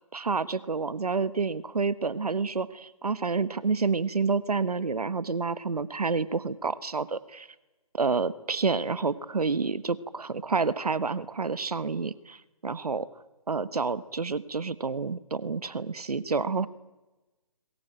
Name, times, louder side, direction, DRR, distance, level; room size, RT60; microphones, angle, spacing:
voice 1, 0.1-7.5 7.9-13.1 13.5-16.7, right 4 dB, 85° right, 16 dB, 1.3 m, -29 dB
22.5 x 21.0 x 8.9 m, 1.1 s
hypercardioid pair, 150°, 19 cm